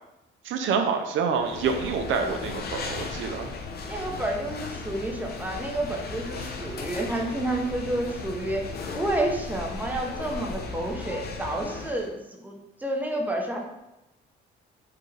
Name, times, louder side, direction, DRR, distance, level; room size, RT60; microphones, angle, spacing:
voice 1, 0.4-3.5, right 5 dB, 75° right, 5 dB, 0.5 m, -27 dB
sound 1, 1.4-12.1, left 4 dB, 50° left, 0.6 m, -36 dB
voice 2, 3.9-8.7 8.9-12.5 12.8-13.6, right 1 dB, 10° right, 1 dB, 0.7 m, -30 dB
4.6 x 2.4 x 3.2 m, 0.92 s
cardioid pair, 90°, 20 cm